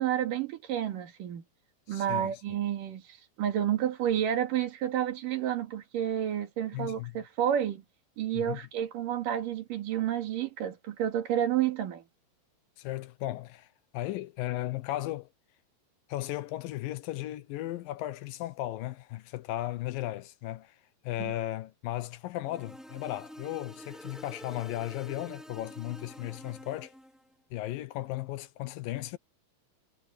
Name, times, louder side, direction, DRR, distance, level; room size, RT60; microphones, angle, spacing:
voice 1, 0.0-1.4 1.9-3.0 3.4-7.8 8.2-12.0 21.2-21.3, right 10 dB, 75° right, 3.7 m, -30 dB
voice 2, 1.9-2.4 6.7-7.2 8.3-8.6 12.8-13.7 13.9-15.3 16.1-20.8 21.0-26.9 27.5-29.2, left 15 dB, 85° left, 2.7 m, -36 dB
sound 1, 22.4-27.2, equal, ahead, 1.9 m, -47 dB
omnidirectional pair, 4.0 m